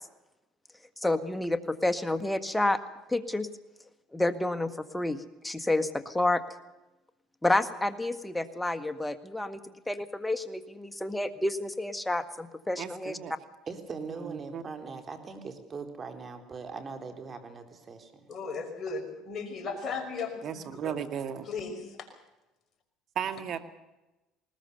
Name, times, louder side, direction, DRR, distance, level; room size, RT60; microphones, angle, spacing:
voice 1, 1.0-2.8 3.1-3.5 4.1-6.4 7.4-9.6 9.9-13.2, left 2 dB, 5° left, 10 dB, 1.7 m, -29 dB
voice 2, 12.8-13.3 14.1-14.6 20.4-21.5 23.2-23.6, right 8 dB, 50° right, 10 dB, 2.0 m, -35 dB
voice 3, 13.7-18.3, right 4 dB, 35° right, 7 dB, 3.7 m, -41 dB
voice 4, 18.3-20.9 21.4-22.1, left 4 dB, 40° left, 3 dB, 5.6 m, -36 dB
20.0 x 19.5 x 7.0 m, 1.0 s
supercardioid pair, 90°, 0 cm